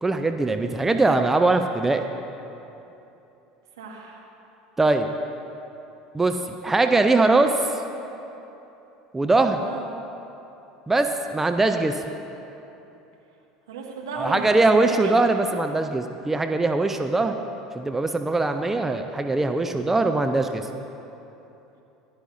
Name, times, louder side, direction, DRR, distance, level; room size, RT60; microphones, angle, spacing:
voice 1, 0.0-2.0 4.8-5.1 6.1-7.6 9.1-9.6 10.9-12.0 14.2-17.3 17.7-20.7, right 2 dB, 15° right, 7 dB, 0.5 m, -21 dB
voice 2, 3.8-4.3 9.6-9.9 13.7-15.1, right 4 dB, 75° right, -1 dB, 1.6 m, -35 dB
16.0 x 11.0 x 2.6 m, 3.0 s
figure-of-eight pair, 70°, 2 cm